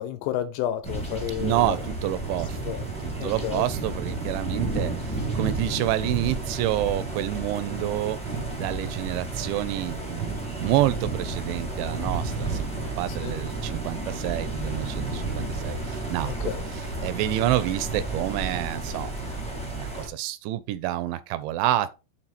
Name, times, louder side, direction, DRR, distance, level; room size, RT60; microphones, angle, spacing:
voice 1, 0.0-1.8 2.7-2.9 3.2-3.6 13.2-13.4 16.2-16.6 17.4-17.5, left 11 dB, 85° left, 2.5 m, -31 dB
sound 1, 0.8-20.1, right 3 dB, 5° left, 0.7 m, -31 dB
voice 2, 1.4-2.8 3.0-19.2 19.8-21.9, right 14 dB, 80° right, 2.7 m, -28 dB
8.9 x 4.2 x 4.1 m
omnidirectional pair, 5.6 m